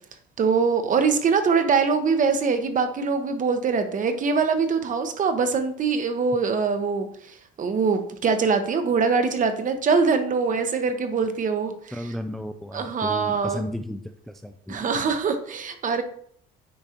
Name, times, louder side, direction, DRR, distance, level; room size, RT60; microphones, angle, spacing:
voice 1, 0.4-7.1 7.6-12.1 12.7-13.6 14.7-16.0, right 5 dB, 40° right, 8 dB, 0.9 m, -23 dB
voice 2, 11.9-14.0 14.4-14.8, equal, ahead, 7 dB, 0.4 m, -33 dB
8.5 x 4.8 x 2.9 m, 0.63 s
cardioid pair, 100°, 20 cm